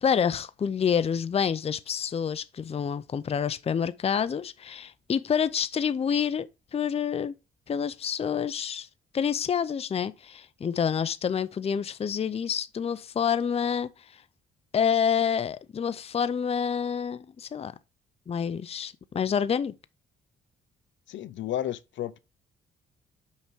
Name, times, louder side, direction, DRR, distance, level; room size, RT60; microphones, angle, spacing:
voice 1, 0.0-7.3 7.7-8.9 9.1-13.9 14.7-17.7 18.3-19.7, left 7 dB, 30° left, 0.5 m, -28 dB
voice 2, 21.1-22.2, left 11 dB, 70° left, 0.6 m, -32 dB
5.8 x 5.7 x 4.6 m
cardioid pair, 90°, 20 cm